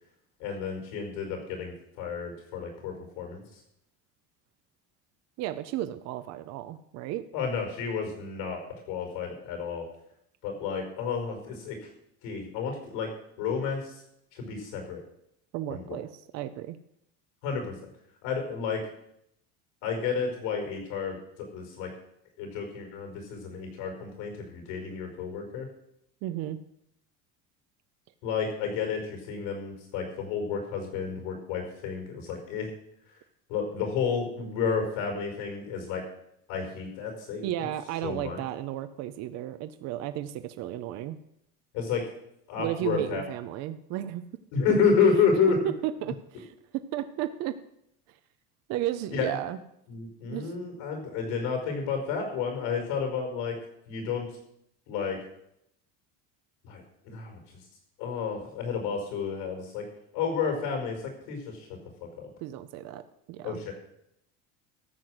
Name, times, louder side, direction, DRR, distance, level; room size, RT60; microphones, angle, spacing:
voice 1, 0.4-3.6 7.3-9.9 10.4-11.9 12.2-13.1 13.4-13.9 14.3-15.0 15.7-16.0 17.4-17.8 18.2-18.8 19.8-21.9 22.4-25.7 28.2-32.7 33.5-36.0 36.5-37.7 38.0-38.4 41.7-42.1 42.5-43.2 44.5-45.6 49.1-49.4 49.9-53.6 53.9-54.3 54.9-55.2 56.6-57.6 58.0-59.8 60.1-61.0 61.3-61.8 62.2-62.3 63.4-63.7, left 6 dB, 75° left, 3 dB, 5.1 m, -30 dB
voice 2, 5.4-7.2 15.5-16.8 26.2-26.6 37.4-41.2 42.6-44.2 46.0-46.5 46.9-47.5 48.1-48.2 48.7-49.6 50.3-50.5 62.4-63.0 63.3-63.6, right 13 dB, 50° right, 10 dB, 0.7 m, -34 dB
13.5 x 6.3 x 7.9 m, 0.77 s
cardioid pair, 170°, 33 cm